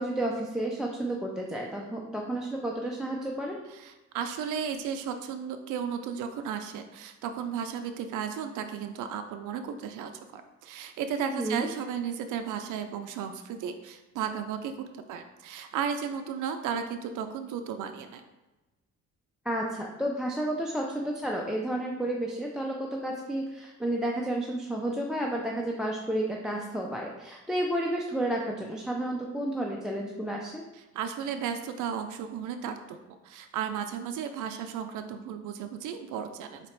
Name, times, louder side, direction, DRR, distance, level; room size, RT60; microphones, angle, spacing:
voice 1, 0.0-3.6 11.3-11.7 19.5-30.6, right 1 dB, ahead, -1 dB, 0.5 m, -31 dB
voice 2, 3.7-18.2 30.9-36.7, right 7 dB, 80° right, 7 dB, 0.5 m, -34 dB
4.1 x 2.9 x 4.5 m, 1.1 s
cardioid pair, 90°, 30 cm